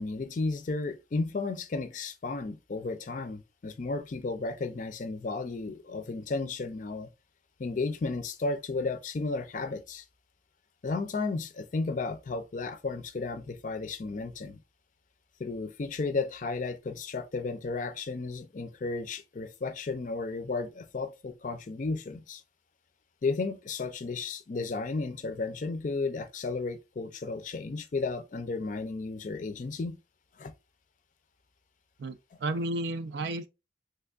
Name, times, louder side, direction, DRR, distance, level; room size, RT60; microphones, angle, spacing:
voice 1, 0.0-7.1 7.6-10.0 10.8-14.6 15.4-22.4 23.2-30.0 30.4-30.5 32.3-32.4, left 3 dB, 45° left, 0.4 m, -33 dB
voice 2, 32.0-33.5, right 2 dB, 75° right, 0.4 m, -32 dB
3.3 x 3.3 x 2.3 m
head